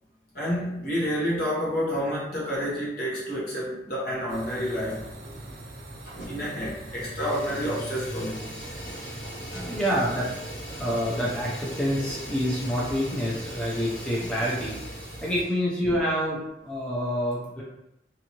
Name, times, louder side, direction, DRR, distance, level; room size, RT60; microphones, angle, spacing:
voice 1, 0.3-5.1 6.3-8.4, equal, 55° left, -6 dB, 1.0 m, -29 dB
sound 1, 4.3-15.4, right 1 dB, 55° right, 0.5 m, -41 dB
Fire, 6.0-6.6 6.9-15.6, equal, 80° left, 1.1 m, -40 dB
voice 2, 9.6-10.3 10.7-14.8 15.2-17.6, equal, 5° left, -6 dB, 0.5 m, -27 dB
2.6 x 2.6 x 2.9 m, 0.85 s
head